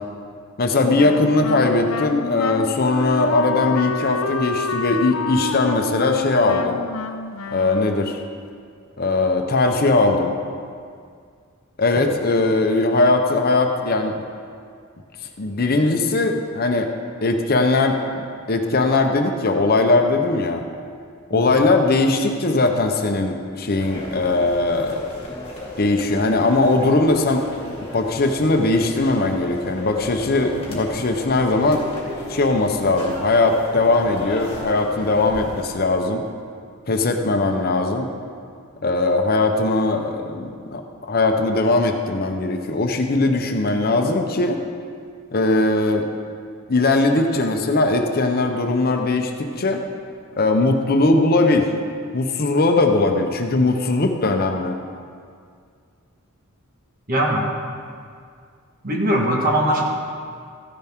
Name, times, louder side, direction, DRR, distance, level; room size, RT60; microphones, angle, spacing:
voice 1, 0.6-6.8 7.5-8.2 9.0-10.3 11.8-14.2 15.4-16.9 17.2-20.6 21.3-25.0 25.8-27.4 27.9-31.8 32.3-36.2 36.9-38.1 38.8-44.6 45.3-46.1 46.7-49.8 50.3-51.7 52.1-54.8, left 2 dB, 45° left, 4 dB, 0.8 m, -20 dB
Wind instrument woodwind instrument, 0.9-8.3, left 4 dB, 80° left, 0.5 m, -28 dB
sound 1, 23.8-35.6, left 1 dB, 30° left, 2.3 m, -35 dB
voice 2, 57.1-57.5 58.8-59.8, right 1 dB, 45° right, 0 dB, 1.6 m, -20 dB
14.5 x 10.0 x 3.6 m, 2.2 s
head